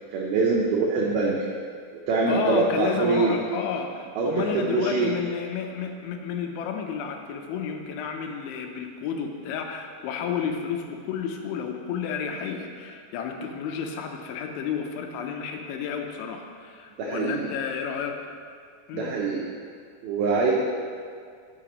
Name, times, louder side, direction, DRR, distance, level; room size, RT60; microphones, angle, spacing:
voice 1, 0.1-1.4 2.1-3.3 4.2-4.3 4.5-5.1 17.0-17.4 18.9-19.4 20.0-20.5, right 4 dB, 90° right, -3 dB, 2.1 m, -24 dB
voice 2, 2.3-18.2 18.9-19.1, left 7 dB, 85° left, 3 dB, 3.1 m, -31 dB
13.5 x 6.9 x 3.0 m, 2.1 s
omnidirectional pair, 5.4 m